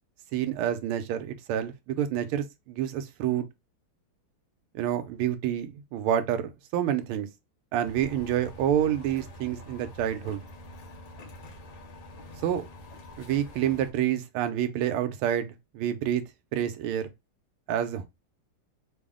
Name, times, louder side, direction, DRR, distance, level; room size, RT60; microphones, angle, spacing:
voice 1, 0.3-3.5 4.7-7.3 7.7-10.4 12.4-12.6 13.2-16.2 16.5-17.1 17.7-18.1, right 10 dB, 85° right, 1.5 m, -28 dB
sound 1, 7.8-13.9, left 1 dB, 65° left, 1.3 m, -46 dB
3.6 x 2.0 x 3.5 m
omnidirectional pair, 2.3 m